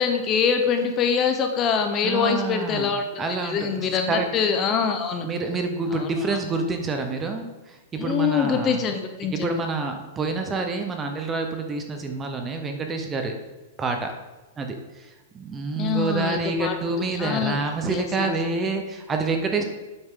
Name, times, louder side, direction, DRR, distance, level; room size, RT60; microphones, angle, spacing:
voice 1, 0.0-5.3 5.9-6.4 8.0-9.6 15.8-16.8 17.1-17.6 17.9-18.3, left 6 dB, 20° left, 5 dB, 0.7 m, -24 dB
voice 2, 2.0-4.3 5.2-8.8 9.3-13.3 13.8-14.1 14.6-19.6, right 3 dB, 10° right, 5 dB, 0.7 m, -28 dB
10.5 x 8.0 x 3.7 m, 1.1 s
supercardioid pair, 175°, 0 cm